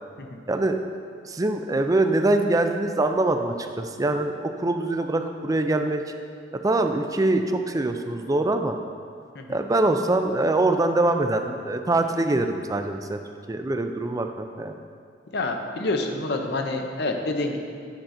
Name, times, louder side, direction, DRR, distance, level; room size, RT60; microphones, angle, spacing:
voice 1, 0.5-0.8 1.3-6.0 6.6-8.8 9.5-13.2 13.5-14.7, right 2 dB, 20° right, 6 dB, 0.4 m, -23 dB
voice 2, 15.3-17.6, left 2 dB, 65° left, 4 dB, 0.7 m, -28 dB
9.0 x 5.8 x 3.8 m, 2.2 s
head